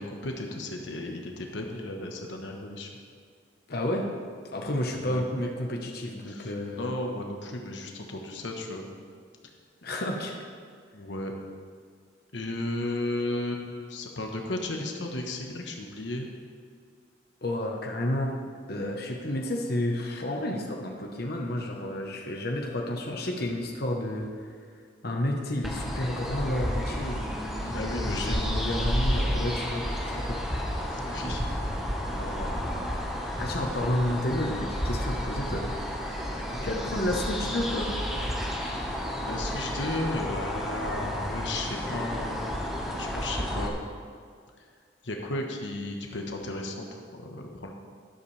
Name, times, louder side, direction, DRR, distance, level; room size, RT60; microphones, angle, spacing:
voice 1, 0.0-2.9 5.0-5.2 6.3-6.5 6.8-8.9 10.9-11.3 12.3-16.3 27.7-28.6 30.9-31.4 32.1-32.6 36.4-36.7 38.4-39.0 39.3-42.4 42.9-43.7 45.0-47.7, left 2 dB, 70° left, 2 dB, 1.2 m, -34 dB
voice 2, 3.7-4.1 4.5-6.9 9.8-10.4 17.4-18.3 18.7-24.5 25.0-30.4 33.4-35.7 36.6-37.9, left 1 dB, 55° left, 0 dB, 1.1 m, -31 dB
sound 1, 25.6-43.7, equal, ahead, 1.3 m, -31 dB
12.5 x 11.5 x 3.3 m, 2.1 s
head